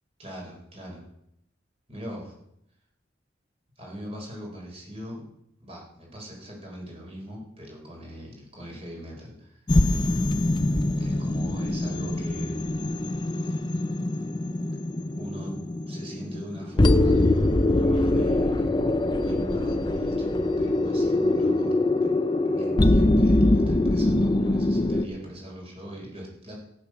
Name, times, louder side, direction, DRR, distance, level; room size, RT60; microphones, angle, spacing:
voice 1, 0.2-1.0 1.9-2.3 3.8-5.3 5.6-9.6 11.0-12.6 13.1-13.8 15.2-15.6 15.9-18.7 19.2-21.8 22.4-26.5, equal, 30° right, -1 dB, 4.6 m, -40 dB
sound 1, 9.7-25.1, left 2 dB, 25° left, 0.6 m, -23 dB
14.0 x 8.5 x 6.3 m, 0.78 s
head